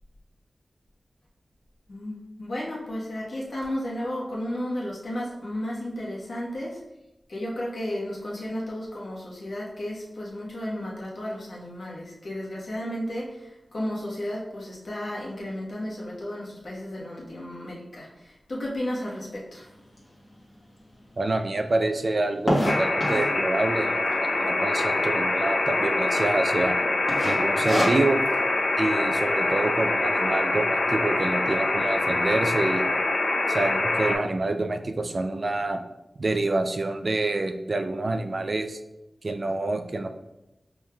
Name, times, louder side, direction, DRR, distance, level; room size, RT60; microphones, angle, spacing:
voice 1, 1.9-6.8 7.3-13.3 13.7-18.1 18.5-19.7, left 1 dB, 70° left, -5 dB, 1.1 m, -33 dB
sound 1, 20.0-20.1 20.6-20.7 20.9-21.0 21.3-23.4 24.1-24.5 24.8-24.9 25.1-25.2 25.8-26.1 26.4-26.7 27.1-28.3, equal, 25° left, 1.2 m, -26 dB
voice 2, 21.2-26.8 27.2-28.2 28.8-32.9 33.5-35.8 36.2-38.8 39.2-40.1, right 2 dB, 50° right, 6 dB, 0.3 m, -27 dB
sound 2, 22.7-34.2, left 2 dB, 90° left, 0.6 m, -25 dB
5.3 x 3.1 x 2.3 m, 0.92 s
wide cardioid pair, 85°, 0 cm